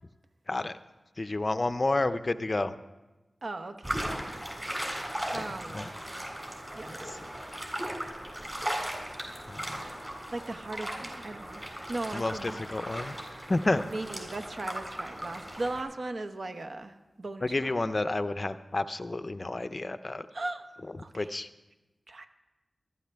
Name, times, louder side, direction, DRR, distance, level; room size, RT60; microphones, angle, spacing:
voice 1, 1.2-2.7 5.3-5.9 6.8-7.2 9.5-9.9 12.1-13.1 13.5-13.8 17.4-20.3 21.1-21.5, left 2 dB, 35° left, 12 dB, 0.5 m, -30 dB
voice 2, 3.4-4.1 5.3-5.9 6.7-7.0 10.3-11.6 11.9-12.6 13.9-17.8 20.3-20.7 21.0-21.3 22.1-22.3, right 2 dB, 55° right, 7 dB, 1.0 m, -38 dB
sound 1, 3.8-15.8, right 1 dB, 20° right, 3.5 m, -37 dB
19.0 x 12.5 x 3.4 m, 1.1 s
wide cardioid pair, 90°, 0 cm